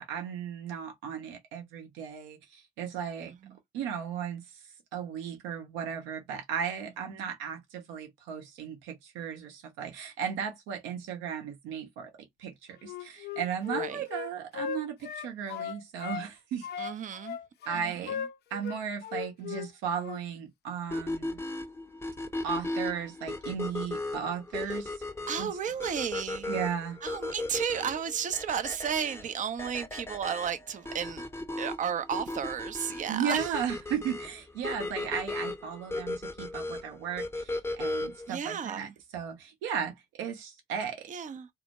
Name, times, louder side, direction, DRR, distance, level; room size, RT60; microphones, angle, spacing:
voice 1, 0.0-3.3 3.7-4.4 4.9-12.1 12.4-12.5 12.8-16.9 17.7-18.2 18.5-21.4 22.4-24.9 25.4-25.5 26.5-27.0 33.1-37.5 37.8-41.1, right 7 dB, 75° right, 0.8 m, -35 dB
Wind instrument woodwind instrument, 12.8-16.3 16.6-19.7 20.0-20.2, left 8 dB, 55° left, 0.4 m, -37 dB
voice 2, 13.7-14.1 16.8-17.4 17.7-18.3 24.7-24.8 25.3-26.5 27.0-31.2 31.6-33.6 38.3-38.9 41.1-41.5, right 8 dB, 40° right, 0.5 m, -33 dB
sound 1, 20.9-38.3, left 2 dB, 15° left, 0.7 m, -36 dB
2.1 x 2.1 x 2.9 m
hypercardioid pair, 40°, 20 cm